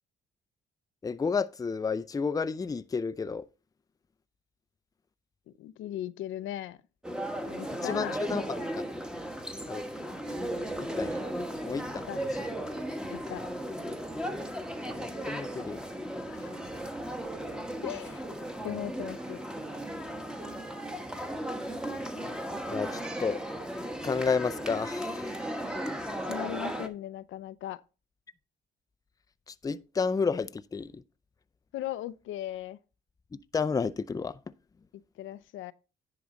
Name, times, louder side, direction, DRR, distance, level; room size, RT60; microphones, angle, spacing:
voice 1, 1.0-3.5 7.8-8.8 9.7-10.1 10.8-11.2 11.6-12.4 14.9-15.8 22.7-23.4 24.0-25.6 29.5-31.0 33.5-34.4, left 5 dB, 20° left, 0.4 m, -31 dB
voice 2, 5.6-6.8 7.5-8.2 12.1-12.2 13.1-13.4 16.3-16.8 17.8-18.2 18.6-19.4 26.2-27.8 31.7-32.8 35.2-35.7, left 12 dB, 80° left, 0.5 m, -38 dB
sound 1, 7.0-26.9, right 1 dB, 5° right, 1.1 m, -36 dB
10.5 x 3.9 x 5.1 m
cardioid pair, 90°, 20 cm